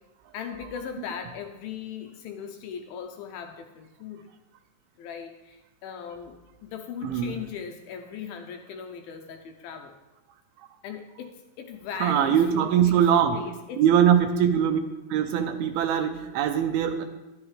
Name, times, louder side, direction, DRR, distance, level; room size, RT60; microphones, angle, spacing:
voice 1, 0.3-4.3 5.0-10.0 10.8-13.1 13.3-13.8, left 7 dB, 80° left, 5 dB, 2.3 m, -39 dB
voice 2, 7.0-7.4 12.0-13.4 13.8-14.8 15.1-17.1, right 9 dB, 80° right, 7 dB, 2.4 m, -22 dB
12.0 x 10.5 x 3.2 m, 1.1 s
omnidirectional pair, 4.7 m